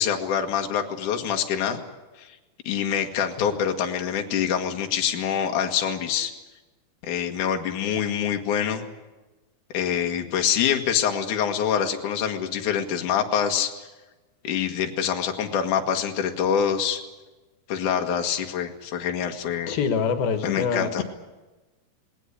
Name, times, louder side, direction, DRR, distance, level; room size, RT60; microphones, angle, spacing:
voice 1, 0.0-1.8 2.2-2.4 2.7-6.3 7.0-8.8 9.7-13.7 14.4-17.0 17.7-19.7 20.4-21.0, left 8 dB, 60° left, 4 dB, 3.0 m, -25 dB
voice 2, 19.7-21.0, left 6 dB, 80° left, 8 dB, 3.3 m, -25 dB
19.5 x 18.5 x 10.0 m, 1.1 s
omnidirectional pair, 4.3 m